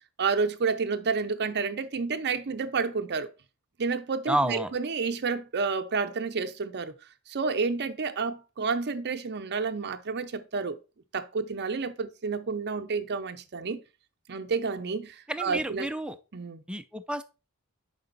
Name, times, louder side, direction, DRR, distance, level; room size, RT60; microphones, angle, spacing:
voice 1, 0.2-3.3 3.8-6.9 7.3-10.8 11.1-13.8 14.3-15.9 16.3-16.6, right 4 dB, 50° right, 0.6 m, -30 dB
voice 2, 4.3-4.7 15.3-16.2 16.7-17.2, right 1 dB, 5° right, 0.4 m, -29 dB
6.0 x 4.9 x 3.9 m
head